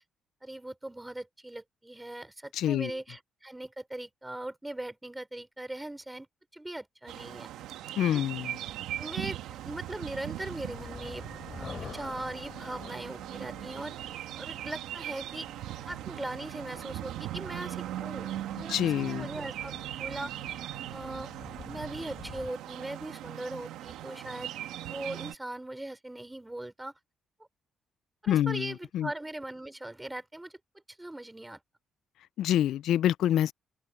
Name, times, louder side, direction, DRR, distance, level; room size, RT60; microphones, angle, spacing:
voice 1, 0.4-6.3 6.5-7.5 8.0-8.2 9.0-11.3 11.6-13.9 14.4-15.5 15.9-20.3 20.9-21.3 21.6-24.5 24.9-26.9 28.2-30.5 31.0-31.6, right 1 dB, 10° right, 4.5 m, -40 dB
voice 2, 2.5-2.9 8.0-8.6 18.7-19.3 28.3-29.1 32.4-33.5, left 11 dB, 80° left, 0.4 m, -27 dB
sound 1, 7.1-25.3, right 13 dB, 85° right, 1.7 m, -39 dB
sound 2, 9.7-22.5, left 6 dB, 45° left, 3.3 m, -49 dB
open air
cardioid pair, 90°, 0 cm